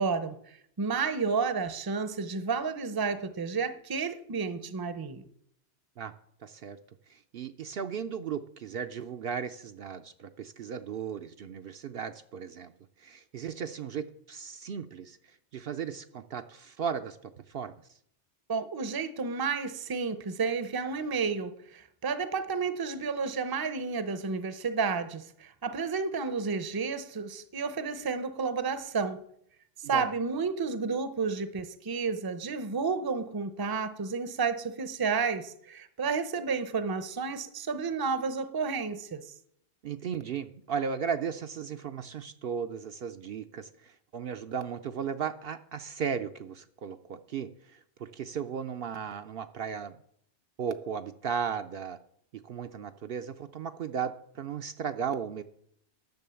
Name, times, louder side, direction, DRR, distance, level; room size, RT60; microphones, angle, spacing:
voice 1, 0.0-5.2 18.5-29.2 29.8-39.2, right 5 dB, 25° right, 0.6 m, -31 dB
voice 2, 6.4-6.8 7.1-12.7 13.0-17.7 29.9-30.1 39.8-50.0 50.6-52.0 52.4-55.4, right 7 dB, 65° right, 0.7 m, -36 dB
10.5 x 6.9 x 7.0 m
omnidirectional pair, 1.2 m